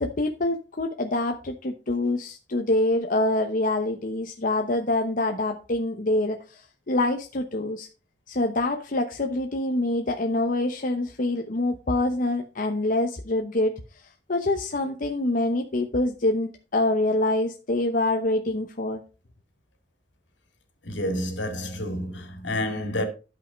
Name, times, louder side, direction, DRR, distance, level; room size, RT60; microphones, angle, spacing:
voice 1, 0.0-7.9 8.3-13.8 14.3-19.0, left 2 dB, 45° left, 0.9 m, -25 dB
voice 2, 20.8-23.1, left 1 dB, 75° left, 2.5 m, -29 dB
12.0 x 5.6 x 5.1 m
head